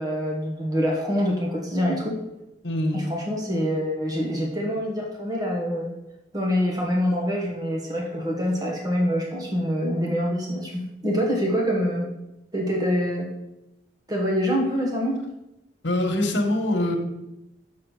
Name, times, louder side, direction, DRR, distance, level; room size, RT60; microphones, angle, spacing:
voice 1, 0.0-2.2 2.9-5.9 6.3-12.1 12.5-13.3 14.1-15.2, equal, 20° right, -1 dB, 1.3 m, -25 dB
voice 2, 2.6-3.0 15.8-17.0, left 1 dB, 90° left, 4 dB, 1.4 m, -23 dB
7.2 x 6.3 x 4.9 m, 0.91 s
head